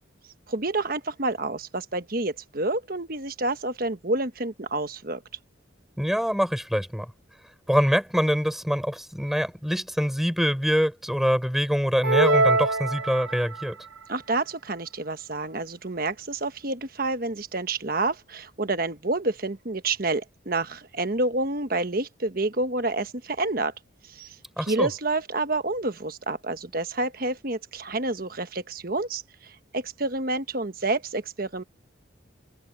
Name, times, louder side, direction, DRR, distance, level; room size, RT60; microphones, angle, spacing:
voice 1, 0.5-5.2 14.1-23.7 24.1-24.3 24.6-31.6, right 2 dB, 45° right, 1.3 m, -28 dB
voice 2, 6.0-7.1 7.7-13.8 24.6-24.9, equal, ahead, 4.3 m, -24 dB
sound 1, 12.0-13.7, right 2 dB, 80° right, 0.7 m, -23 dB
head